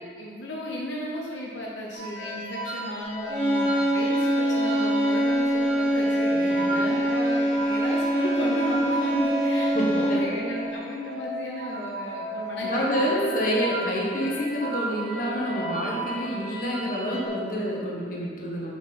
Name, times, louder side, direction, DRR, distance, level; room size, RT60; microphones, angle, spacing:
voice 1, 0.0-13.1, left 1 dB, 75° left, -3 dB, 0.8 m, -34 dB
sound 1, 1.9-17.3, right 1 dB, 40° right, 1.5 m, -34 dB
sound 2, 3.3-10.4, equal, 15° left, 0.8 m, -24 dB
voice 2, 6.4-7.0 9.7-10.2 12.6-18.7, equal, 45° left, -4 dB, 1.2 m, -28 dB
6.0 x 6.0 x 4.1 m, 2.3 s
head